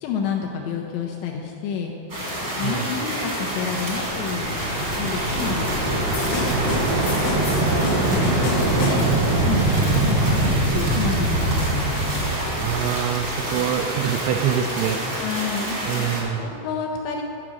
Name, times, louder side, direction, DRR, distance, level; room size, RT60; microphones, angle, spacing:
voice 1, 0.0-1.9 2.4-4.6 4.9-6.0 8.1-12.3 15.2-17.2, left 6 dB, 85° left, 1 dB, 2.6 m, -30 dB
sound 1, 2.1-16.2, right 1 dB, 45° right, 1.2 m, -29 dB
voice 2, 2.6-2.9 6.5-8.1 12.6-15.0 15.9-16.6, right 9 dB, 85° right, 8 dB, 2.8 m, -26 dB
sound 2, 3.7-13.7, right 2 dB, 65° right, 1.8 m, -23 dB
sound 3, 6.1-9.4, left 3 dB, 70° left, 2.4 m, -29 dB
11.5 x 4.9 x 7.6 m, 2.8 s
omnidirectional pair, 5.5 m